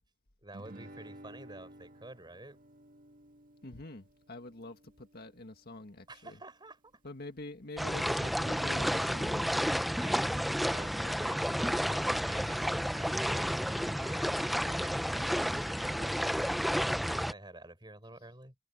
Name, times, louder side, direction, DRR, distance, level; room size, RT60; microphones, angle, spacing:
voice 1, 0.4-2.6 6.1-7.0 10.0-10.4 10.7-16.4 16.8-18.6, right 2 dB, 20° right, 6.9 m, -50 dB
Guitar, 0.5-5.6, right 1 dB, 40° right, 2.1 m, -54 dB
voice 2, 3.6-6.4 7.0-9.5, left 2 dB, 45° left, 1.9 m, -45 dB
sound 1, 7.8-17.3, equal, ahead, 0.6 m, -31 dB
head